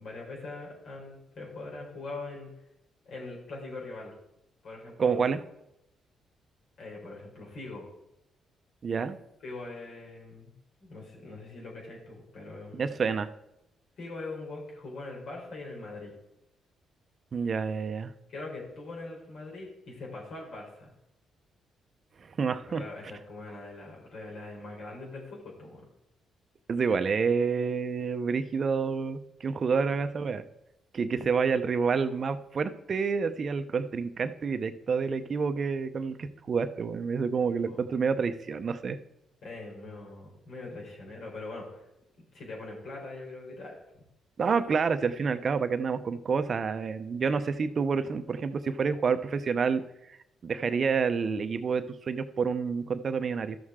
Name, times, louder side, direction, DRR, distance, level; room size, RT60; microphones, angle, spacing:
voice 1, 0.0-2.5 3.1-4.1 4.6-5.3 6.8-7.9 9.4-10.5 10.8-13.0 14.0-16.1 18.3-20.9 22.7-25.8 29.7-30.0 37.4-37.8 39.4-41.8 42.3-44.0, left 2 dB, 65° left, -2 dB, 3.9 m, -42 dB
voice 2, 5.0-5.4 8.8-9.2 12.7-13.3 17.3-18.1 22.2-22.8 26.7-30.4 30.9-39.0 44.4-49.8 50.1-50.2 50.4-53.6, right 5 dB, 45° right, 10 dB, 0.7 m, -28 dB
13.0 x 6.5 x 3.7 m, 0.85 s
cardioid pair, 90°, 0 cm